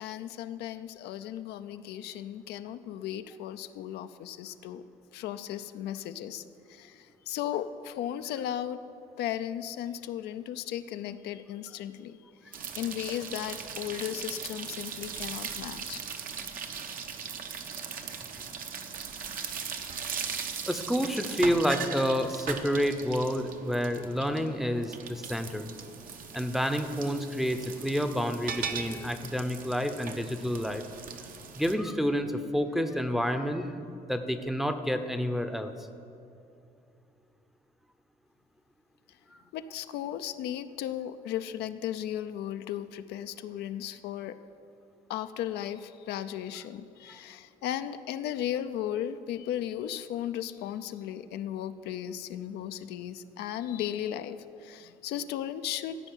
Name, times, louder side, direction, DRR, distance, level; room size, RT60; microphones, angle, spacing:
voice 1, 0.0-4.8 5.1-6.4 6.7-8.8 9.2-12.2 12.8-16.0 39.5-44.3 45.1-56.0, left 11 dB, 75° left, 10 dB, 0.5 m, -36 dB
sound 1, 12.5-31.7, right 6 dB, 55° right, 1.0 m, -39 dB
voice 2, 20.7-25.7 26.3-30.8 31.6-33.7 34.1-35.7 47.1-47.2, equal, ahead, 8 dB, 0.7 m, -29 dB
14.0 x 5.4 x 9.1 m, 2.6 s
cardioid pair, 110°, 17 cm